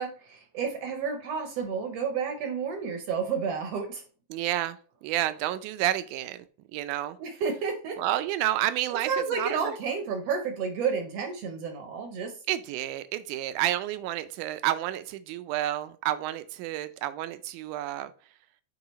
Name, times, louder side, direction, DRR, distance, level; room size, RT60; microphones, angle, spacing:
voice 1, 0.0-4.0 7.2-8.0 8.9-12.4, right 6 dB, 70° right, 5 dB, 1.5 m, -31 dB
voice 2, 4.3-6.5 6.7-7.2 8.0-9.7 12.5-18.1, right 13 dB, 90° right, 12 dB, 2.1 m, -30 dB
9.5 x 3.7 x 2.9 m, 0.39 s
omnidirectional pair, 3.5 m